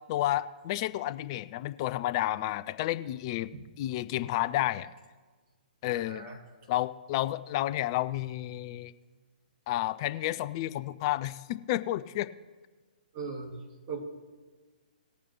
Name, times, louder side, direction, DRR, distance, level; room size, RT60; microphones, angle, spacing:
voice 1, 0.1-3.5 3.8-4.9 5.8-6.2 6.7-8.9 9.7-12.3, left 15 dB, 30° left, 14 dB, 0.4 m, -31 dB
voice 2, 5.9-6.4 13.1-13.5 13.9-14.0, right 5 dB, 30° right, -1 dB, 2.2 m, -39 dB
19.0 x 8.9 x 3.0 m, 1.4 s
figure-of-eight pair, 125°, 5 cm